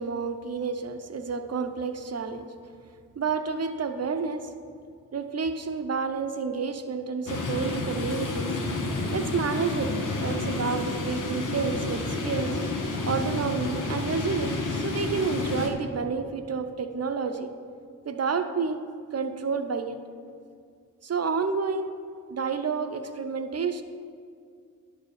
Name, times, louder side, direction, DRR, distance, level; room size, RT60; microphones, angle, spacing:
voice 1, 0.0-2.4 3.2-4.5 5.1-8.5 9.1-12.6 13.1-17.5 18.1-18.8 19.1-20.0 21.0-22.0 22.3-23.8, right 5 dB, 50° right, 7 dB, 0.7 m, -30 dB
sound 1, 7.3-15.7, left 3 dB, 70° left, 1.2 m, -30 dB
10.5 x 4.9 x 6.7 m, 2.2 s
wide cardioid pair, 80°, 33 cm